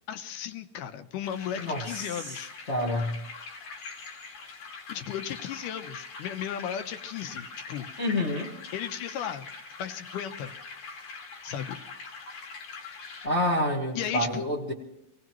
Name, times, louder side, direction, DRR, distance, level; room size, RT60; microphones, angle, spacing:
voice 1, 0.1-2.5 4.9-7.9 8.7-9.5 9.8-10.5 11.4-11.8 14.0-14.4, left 9 dB, 85° left, 9 dB, 2.4 m, -35 dB
sound 1, 1.2-13.3, left 4 dB, 70° left, 3.1 m, -43 dB
voice 2, 2.7-3.2 8.0-8.5 13.2-14.7, left 1 dB, 50° left, -2 dB, 0.7 m, -28 dB
26.5 x 17.5 x 3.1 m, 0.87 s
omnidirectional pair, 3.6 m